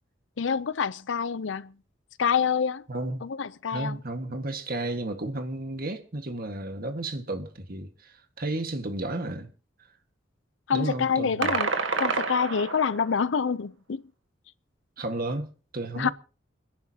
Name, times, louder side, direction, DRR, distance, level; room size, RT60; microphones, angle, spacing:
voice 1, 0.4-1.7 2.2-2.8 3.2-4.0 10.7-11.7 12.0-14.0 16.0-16.1, left 6 dB, 70° left, 0.6 m, -27 dB
voice 2, 2.9-3.2 3.7-9.5 10.7-11.6 15.0-16.1, right 2 dB, 50° right, 1.6 m, -33 dB
sound 1, 11.4-13.1, right 4 dB, 80° right, 1.6 m, -28 dB
29.0 x 11.0 x 2.8 m
head